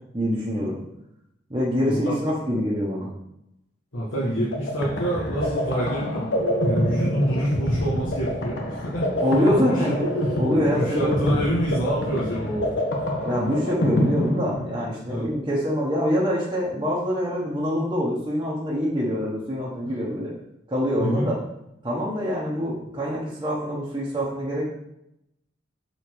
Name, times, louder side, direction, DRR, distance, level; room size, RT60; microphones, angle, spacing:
voice 1, 0.1-0.8 1.5-3.1 9.2-10.1 10.4-11.3 13.2-20.3 20.7-21.4 21.8-24.7, equal, 20° right, -7 dB, 1.1 m, -25 dB
voice 2, 1.9-2.2 3.9-9.3 9.7-9.9 10.7-12.7 15.1-15.3 21.0-21.3, equal, 85° left, -7 dB, 1.5 m, -27 dB
sound 1, 4.2-15.1, equal, 60° left, 1.2 m, -26 dB
7.0 x 4.1 x 4.6 m, 0.83 s
head